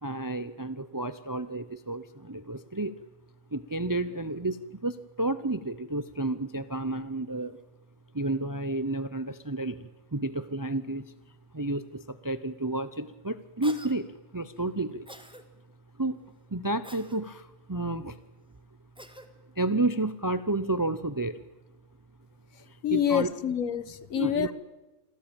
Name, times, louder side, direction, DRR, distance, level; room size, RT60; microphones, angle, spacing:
voice 1, 0.0-2.9 3.5-7.6 8.1-11.1 11.5-14.1 14.3-15.1 16.0-16.2 16.5-18.2 19.6-21.4 22.7-23.3 24.1-24.5, right 2 dB, 25° right, 14 dB, 0.5 m, -31 dB
Cough, 13.6-13.9 15.1-15.4 16.8-17.2 19.0-19.3, equal, 5° right, 1.6 m, -46 dB
voice 2, 22.8-24.5, left 9 dB, 70° left, 16 dB, 1.4 m, -27 dB
26.5 x 17.0 x 9.0 m, 1.1 s
omnidirectional pair, 1.5 m